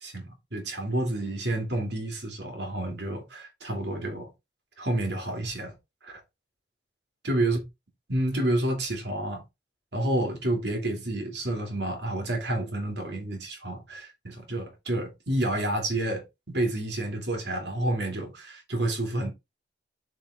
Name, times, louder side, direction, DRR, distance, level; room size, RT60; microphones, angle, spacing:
voice 1, 0.0-4.3 4.8-5.7 6.0-6.2 7.2-7.6 8.1-9.4 9.9-19.3, right 1 dB, 70° right, 2.7 m, -29 dB
7.2 x 4.4 x 3.6 m
head